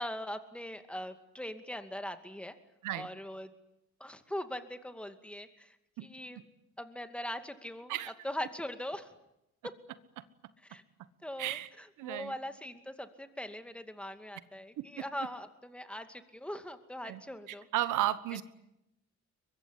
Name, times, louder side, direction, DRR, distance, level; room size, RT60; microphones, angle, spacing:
voice 1, 0.0-2.6 2.9-3.5 4.0-6.4 6.8-7.9 8.2-9.1 10.7-10.8 11.2-17.7, left 1 dB, 5° left, 8 dB, 2.4 m, -41 dB
voice 2, 11.4-11.7 12.0-12.4 14.8-14.9 17.0-17.2 17.5-18.4, right 13 dB, 90° right, 15 dB, 1.4 m, -33 dB
23.0 x 22.0 x 10.0 m, 0.85 s
cardioid pair, 90°, 30 cm